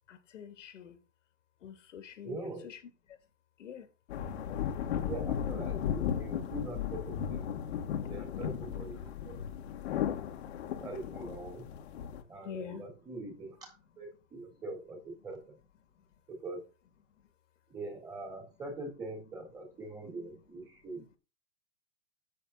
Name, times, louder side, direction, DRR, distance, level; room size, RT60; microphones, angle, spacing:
voice 1, 0.1-1.0 1.6-2.8 3.1-3.2 3.6-3.9 4.5-4.6 8.4-8.5 12.2-12.9 15.8-16.1 17.1-17.3, left 8 dB, 85° left, 3.0 m, -46 dB
voice 2, 2.2-2.7 5.1-7.6 8.1-9.4 10.8-11.8 12.3-15.6 16.3-16.6 17.7-21.1, right 2 dB, 10° right, 3.8 m, -43 dB
sound 1, 4.1-12.2, left 9 dB, 60° left, 2.1 m, -35 dB
10.0 x 7.8 x 4.2 m
supercardioid pair, 160°, 37 cm